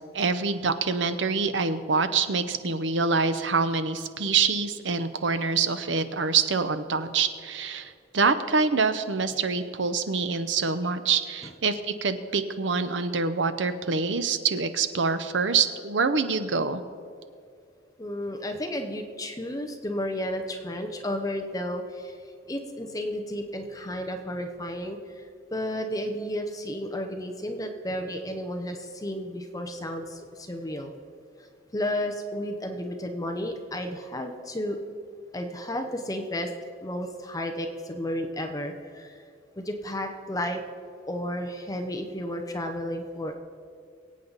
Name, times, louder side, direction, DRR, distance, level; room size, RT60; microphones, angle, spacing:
voice 1, 0.1-16.8, right 4 dB, 70° right, 10 dB, 0.8 m, -25 dB
voice 2, 18.0-22.1 22.5-25.0 25.5-30.9 31.7-34.8 35.3-36.5 36.8-39.1 39.6-40.6 41.1-43.4, left 1 dB, 20° left, 5 dB, 0.8 m, -32 dB
23.5 x 8.6 x 4.0 m, 2.3 s
head